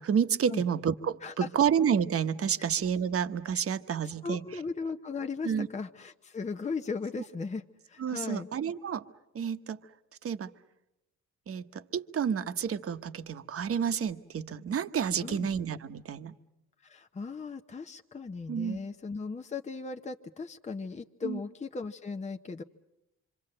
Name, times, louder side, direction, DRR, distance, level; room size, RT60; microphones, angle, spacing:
voice 1, 0.0-4.4 5.4-5.7 8.0-9.0 9.3-9.8 10.2-10.5 11.5-16.4 18.5-18.8 21.2-21.4, right 7 dB, 50° right, 11 dB, 1.1 m, -30 dB
voice 2, 4.0-8.5 15.2-15.5 16.8-22.6, left 4 dB, 25° left, 5 dB, 0.9 m, -37 dB
26.5 x 25.5 x 7.8 m, 0.91 s
cardioid pair, 90°, 30 cm